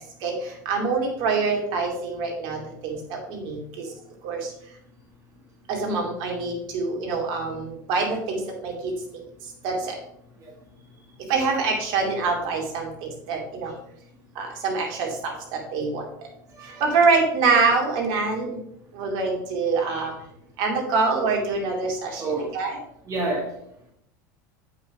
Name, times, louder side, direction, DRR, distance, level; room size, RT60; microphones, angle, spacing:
voice 1, 0.2-3.9 4.2-4.5 5.7-8.9 9.6-10.0 11.3-13.7 14.3-16.0 16.6-18.6 18.9-20.1 20.6-22.2 22.5-22.8, right 4 dB, 55° right, 1 dB, 2.6 m, -25 dB
voice 2, 16.5-17.0 19.9-20.1 22.2-22.5 23.1-23.5, right 3 dB, 35° right, -1 dB, 1.9 m, -29 dB
8.3 x 5.8 x 4.9 m, 0.74 s
hypercardioid pair, 80°, 10 cm